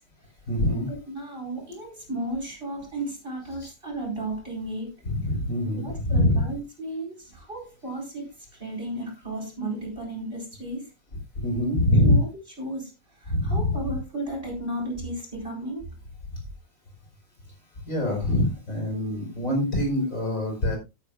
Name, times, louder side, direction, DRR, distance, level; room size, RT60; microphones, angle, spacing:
voice 1, 0.5-0.9 3.6-3.7 5.0-6.4 11.4-12.2 13.3-13.9 17.9-20.8, left 1 dB, 45° left, 4.9 m, -24 dB
voice 2, 1.1-4.9 5.8-8.3 8.6-10.9 12.0-12.3 12.6-12.9 13.2-15.8, right 1 dB, 30° right, 4.6 m, -33 dB
17.0 x 8.0 x 2.3 m
omnidirectional pair, 1.9 m